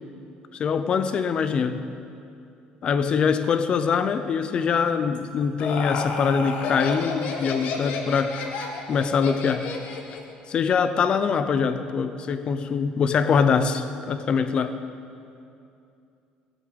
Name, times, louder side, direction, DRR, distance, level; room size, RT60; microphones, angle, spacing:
voice 1, 0.5-1.9 2.8-8.4 8.9-9.7 10.5-14.8, left 6 dB, 35° left, 11 dB, 0.8 m, -23 dB
Laughter, 5.1-10.3, left 4 dB, 60° left, 1.8 m, -31 dB
17.5 x 8.2 x 9.5 m, 2.6 s
cardioid pair, 170°, 3 cm